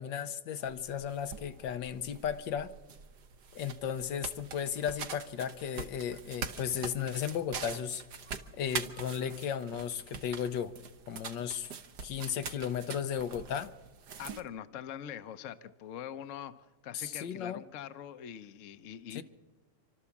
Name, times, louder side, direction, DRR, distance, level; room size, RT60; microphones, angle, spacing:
voice 1, 0.0-2.7 3.5-8.0 8.5-10.7 11.1-11.7 12.0-13.7 16.9-17.6 19.1-19.2, left 8 dB, 80° left, 10 dB, 1.5 m, -35 dB
sound 1, 0.6-14.4, right 6 dB, 65° right, 1.5 m, -44 dB
voice 2, 14.2-16.5 16.8-19.2, left 9 dB, 55° left, 10 dB, 1.0 m, -43 dB
28.5 x 13.0 x 7.2 m, 1.1 s
omnidirectional pair, 2.0 m